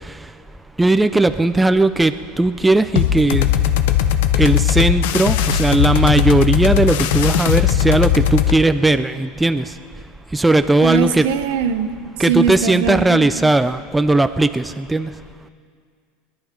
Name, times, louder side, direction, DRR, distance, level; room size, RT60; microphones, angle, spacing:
voice 1, 0.8-3.5 4.4-9.7 10.3-11.3 12.2-15.1, right 2 dB, 10° right, 10 dB, 0.4 m, -17 dB
sound 1, 2.9-8.6, left 10 dB, 75° left, 0.7 m, -18 dB
voice 2, 10.8-11.9 12.3-13.3, right 6 dB, 80° right, 9 dB, 0.9 m, -21 dB
20.5 x 10.5 x 5.2 m, 2.1 s
supercardioid pair, 125°, 0 cm